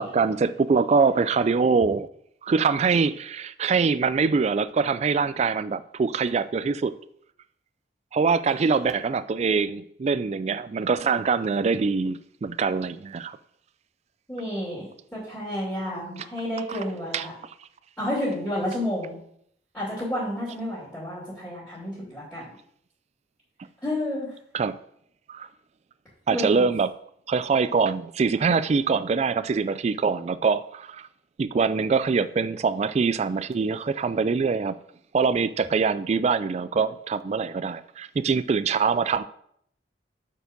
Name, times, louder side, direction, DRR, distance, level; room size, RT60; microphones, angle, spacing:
voice 1, 0.0-2.1 2.4-6.9 8.1-13.4 16.7-16.8 17.1-17.3 24.5-24.8 25.3-25.5 26.3-26.9 27.3-31.1 31.4-34.8 35.1-39.2, right 5 dB, 35° right, 0.3 m, -24 dB
voice 2, 14.3-14.9 15.1-17.3 18.0-19.2 19.7-22.5 23.8-24.3 26.3-26.6, left 1 dB, 5° left, 2.7 m, -30 dB
6.8 x 4.6 x 5.2 m
head